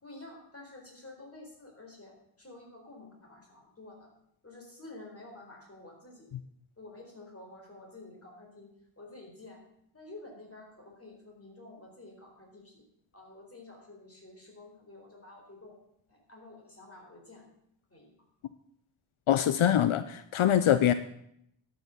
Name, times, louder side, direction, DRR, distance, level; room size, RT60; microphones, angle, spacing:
voice 1, 0.0-4.1 4.4-6.3 6.8-8.7 9.0-9.6 9.9-12.8 13.1-15.8 16.1-17.5 17.9-18.1, left 2 dB, 30° left, 0 dB, 4.3 m, -50 dB
voice 2, 19.3-20.9, left 10 dB, 85° left, 12 dB, 0.6 m, -24 dB
12.0 x 7.0 x 7.1 m, 0.74 s
wide cardioid pair, 95°, 48 cm